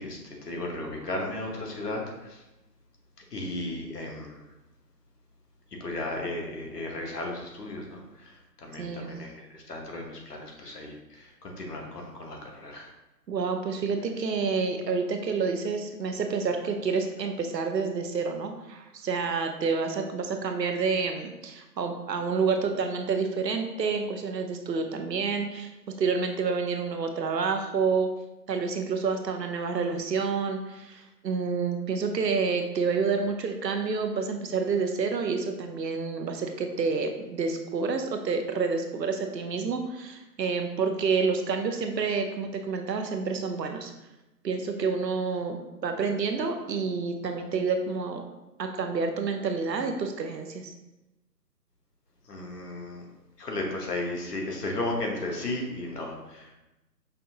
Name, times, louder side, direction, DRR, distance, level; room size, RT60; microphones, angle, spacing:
voice 1, 0.0-2.4 3.3-4.4 5.7-12.9 52.2-53.0 53.4-56.5, left 2 dB, 70° left, 1 dB, 1.1 m, -35 dB
voice 2, 13.3-25.7 26.0-28.1 28.5-43.9 44.4-45.6 45.8-48.2 48.6-50.7, right 5 dB, 80° right, 5 dB, 0.7 m, -28 dB
5.3 x 2.6 x 2.8 m, 0.99 s
figure-of-eight pair, 160°, 50 cm